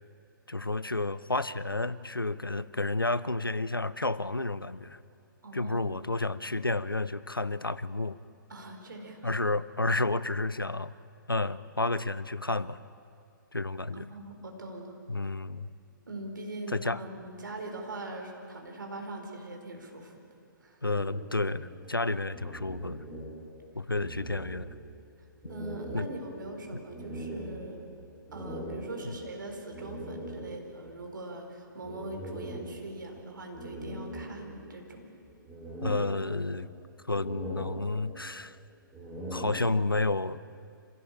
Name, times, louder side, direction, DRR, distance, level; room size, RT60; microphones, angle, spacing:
voice 1, 0.5-5.0 5.5-8.2 9.2-10.9 11.3-12.8 13.5-14.1 15.1-15.7 16.7-17.0 20.8-23.0 23.7-24.7 25.9-26.1 26.7-26.8 29.0-29.1 35.8-36.7 37.1-38.6 39.3-40.4, left 2 dB, 90° left, 17 dB, 0.7 m, -31 dB
voice 2, 5.4-5.9 8.5-9.4 13.9-15.0 16.1-20.2 20.6-20.9 25.5-27.9 28.3-35.1, right 2 dB, 65° right, 3 dB, 4.5 m, -41 dB
sound 1, 20.8-23.7 23.9-25.0 25.4-30.9 31.8-33.1 33.5-34.9 35.3-36.8 37.1-38.4 38.8-40.2, right 1 dB, 5° right, 4.3 m, -41 dB
26.0 x 16.5 x 8.9 m, 2.6 s
figure-of-eight pair, 125°, 11 cm